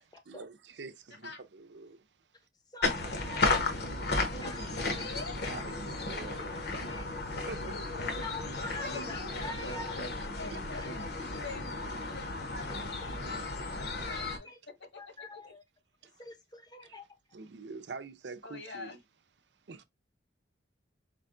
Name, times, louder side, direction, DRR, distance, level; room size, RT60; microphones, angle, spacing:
voice 1, 0.0-2.1 3.3-3.4 3.9-4.0 5.4-8.3 10.5-10.6 13.3-13.5 16.0-16.2 16.8-17.0 17.3-19.0 19.7-19.8, right 4 dB, 70° right, 0.6 m, -47 dB
voice 2, 2.7-3.6 4.4-4.6 5.0-5.1 6.8-7.3 8.2-9.8 10.7-10.9 15.0-15.6 16.2-17.0, left 3 dB, 20° left, 0.7 m, -44 dB
sound 1, 2.8-14.4, left 3 dB, 60° left, 1.0 m, -34 dB
voice 3, 4.4-5.4 8.4-8.5 8.8-15.5 18.4-19.0, left 4 dB, 75° left, 1.7 m, -46 dB
5.1 x 2.3 x 3.7 m
head